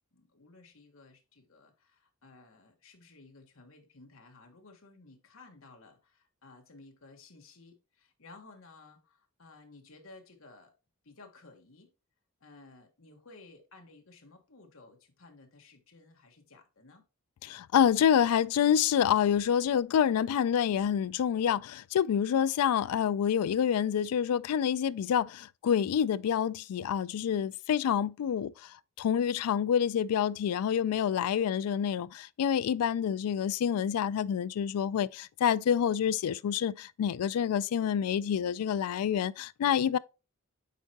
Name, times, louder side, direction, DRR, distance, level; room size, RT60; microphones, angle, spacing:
voice 1, 0.1-10.7 11.0-11.9 12.4-17.0, left 3 dB, 65° left, 1.3 m, -55 dB
voice 2, 17.4-40.0, left 8 dB, 90° left, 0.3 m, -27 dB
8.2 x 4.5 x 2.8 m
head